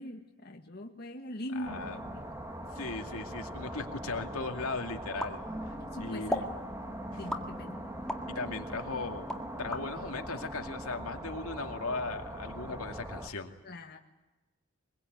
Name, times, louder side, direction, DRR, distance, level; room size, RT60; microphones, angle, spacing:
voice 1, 0.0-2.3 5.9-6.6 7.1-7.8 13.6-14.0, left 1 dB, 45° left, 2 dB, 1.7 m, -41 dB
voice 2, 1.6-2.0 2.7-5.7 6.0-6.4 8.3-9.3 9.6-13.5, left 3 dB, 75° left, 4 dB, 2.4 m, -37 dB
sound 1, 1.6-13.3, right 1 dB, 15° right, 1.9 m, -41 dB
sound 2, 5.2-5.9 6.3-6.6 7.3-8.3 8.8-9.9, left 1 dB, 5° left, 1.9 m, -35 dB
24.0 x 22.5 x 9.4 m, 1.1 s
head